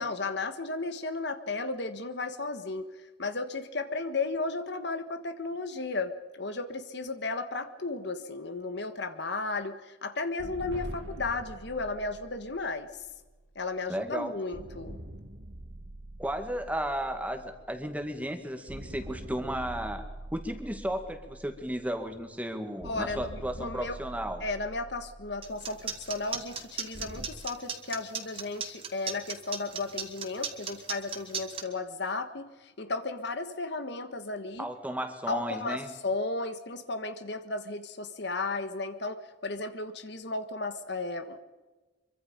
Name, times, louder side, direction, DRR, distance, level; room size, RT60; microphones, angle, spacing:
voice 1, 0.0-12.9 13.5-15.0 22.8-24.0 24.4-34.7 35.3-41.4, left 3 dB, 65° left, 9 dB, 1.5 m, -34 dB
sound 1, 10.4-14.0 14.5-18.3 18.7-22.3 22.8-27.3, right 1 dB, 70° right, 2.4 m, -45 dB
voice 2, 13.9-14.3 16.2-20.1 20.3-24.4 34.6-35.9, equal, 10° right, 6 dB, 2.1 m, -34 dB
sound 2, 25.4-31.6, right 6 dB, 30° right, 2.6 m, -35 dB
25.5 x 24.0 x 5.3 m, 1.2 s
head